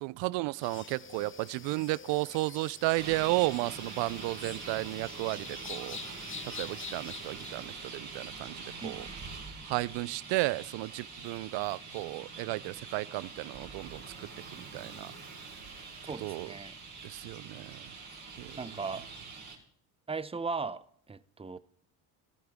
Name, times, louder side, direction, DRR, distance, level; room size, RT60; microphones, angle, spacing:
voice 1, 0.0-6.0 6.6-9.0 9.7-15.1 16.2-16.5 17.0-17.8 18.4-18.5, right 21 dB, 70° right, 0.5 m, -33 dB
sound 1, 0.6-7.5, left 6 dB, 25° left, 0.9 m, -47 dB
Traffic noise roadway noise, 2.9-19.6, right 4 dB, 40° right, 4.2 m, -44 dB
voice 2, 8.8-9.2 16.1-16.8 18.6-19.1 20.1-21.6, right 4 dB, 15° right, 0.7 m, -38 dB
19.0 x 13.5 x 3.6 m
supercardioid pair, 65°, 46 cm